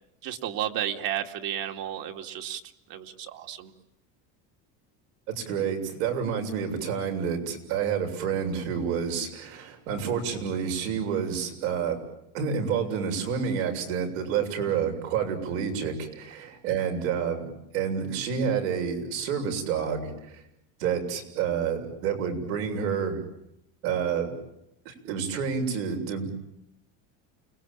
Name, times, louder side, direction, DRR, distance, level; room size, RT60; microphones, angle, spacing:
voice 1, 0.2-2.6 2.9-3.7, right 11 dB, 60° right, 4 dB, 2.5 m, -32 dB
voice 2, 5.3-12.0 12.3-20.4 20.8-23.2 23.8-24.4 24.9-26.3, right 7 dB, 90° right, 5 dB, 7.3 m, -29 dB
29.0 x 20.5 x 9.0 m, 0.81 s
cardioid pair, 130°, 39 cm